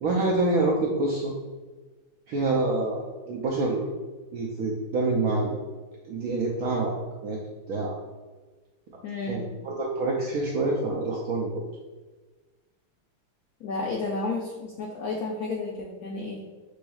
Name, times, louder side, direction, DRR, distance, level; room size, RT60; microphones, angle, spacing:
voice 1, 0.0-1.3 2.3-3.9 4.3-5.6 6.1-6.9 7.2-7.4 7.7-7.9 9.3-11.6, right 2 dB, 85° right, -3 dB, 0.8 m, -26 dB
voice 2, 9.0-9.5 13.6-16.4, left 3 dB, 85° left, -1 dB, 0.8 m, -32 dB
6.1 x 3.2 x 2.3 m, 1.3 s
omnidirectional pair, 2.2 m